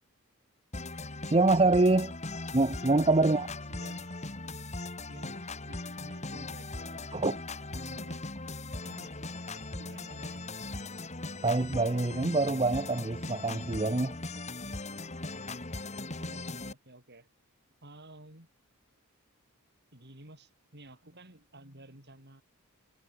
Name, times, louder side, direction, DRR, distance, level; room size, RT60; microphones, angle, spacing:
sound 1, 0.7-16.7, left 2 dB, 30° left, 2.7 m, -39 dB
voice 1, 1.3-2.2 2.5-3.5 7.1-7.4 11.4-14.2, right 2 dB, 25° right, 0.8 m, -25 dB
voice 2, 3.2-4.1 5.1-7.3 7.7-8.2 8.8-9.1 9.4-10.5 16.1-17.3 17.8-18.5 19.9-22.4, right 1 dB, 50° right, 6.4 m, -53 dB
head